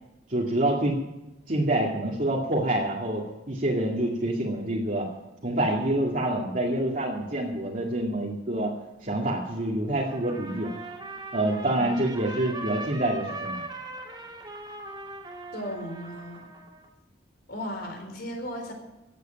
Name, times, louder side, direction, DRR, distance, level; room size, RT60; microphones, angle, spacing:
voice 1, 0.3-1.0 1.5-5.1 5.4-8.8 9.0-10.7 11.3-13.6, right 1 dB, 45° right, -3 dB, 2.1 m, -27 dB
Trumpet, 10.1-16.9, right 2 dB, 25° right, 2.6 m, -40 dB
voice 2, 15.5-16.4 17.5-18.7, equal, 60° left, 3 dB, 4.1 m, -35 dB
16.0 x 8.3 x 9.1 m, 0.98 s
head